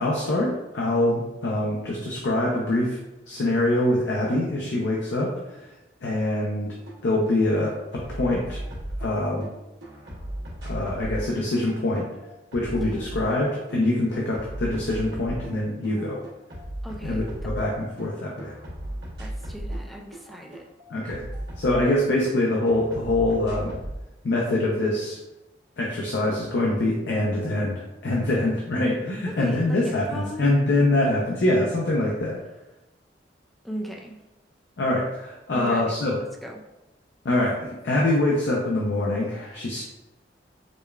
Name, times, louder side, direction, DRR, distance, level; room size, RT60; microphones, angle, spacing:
voice 1, 0.0-3.0 3.3-5.7 6.0-6.7 7.0-8.6 9.0-9.5 10.6-12.0 12.5-16.2 17.0-18.5 20.9-21.2 21.6-23.7 24.2-25.2 25.8-32.4 34.8-36.1 37.2-39.8, left 1 dB, 75° left, -3 dB, 0.5 m, -24 dB
sound 1, 6.9-7.0 7.3-9.5 9.8-13.8 14.1-15.6 15.8-18.1 18.4-22.4 22.7-24.0, right 1 dB, 80° right, 1.1 m, -36 dB
voice 2, 16.8-17.4 19.2-20.6 29.3-30.4 33.6-34.2 35.5-36.0 36.4-36.6, equal, ahead, -1 dB, 0.4 m, -37 dB
5.0 x 2.2 x 2.3 m, 1.0 s
head